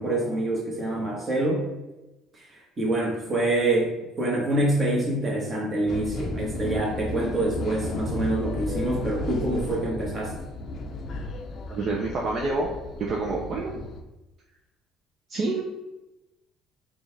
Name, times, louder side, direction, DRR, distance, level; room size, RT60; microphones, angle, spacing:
voice 1, 0.0-1.6 2.8-3.9 4.2-10.3, right 1 dB, 30° right, -2 dB, 1.3 m, -26 dB
sound 1, 5.9-14.0, left 2 dB, 50° left, 0.4 m, -34 dB
voice 2, 11.7-12.7 13.0-13.7 15.3-15.6, right 3 dB, 50° right, -1 dB, 0.5 m, -27 dB
4.0 x 2.4 x 3.3 m, 1.0 s
supercardioid pair, 90°, 0 cm